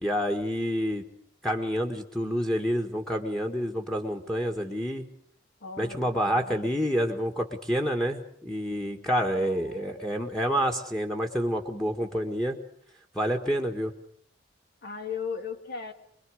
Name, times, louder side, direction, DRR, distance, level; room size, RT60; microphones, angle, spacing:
voice 1, 0.0-1.1 1.4-5.1 5.8-12.6 13.1-13.9, equal, 5° left, 4 dB, 1.7 m, -28 dB
voice 2, 5.6-6.8 9.3-10.0 14.8-15.9, left 5 dB, 55° left, 7 dB, 2.1 m, -38 dB
25.0 x 22.0 x 6.5 m, 0.66 s
head